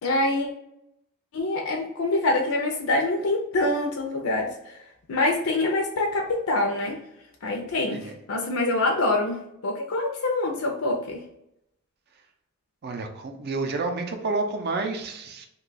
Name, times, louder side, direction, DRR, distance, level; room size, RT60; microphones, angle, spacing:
voice 1, 0.0-0.5 1.3-4.5 5.1-7.0 7.4-11.2, left 2 dB, 70° left, 1 dB, 0.5 m, -25 dB
voice 2, 12.8-15.5, right 3 dB, 50° right, 4 dB, 0.5 m, -29 dB
2.9 x 2.2 x 3.8 m, 0.80 s
head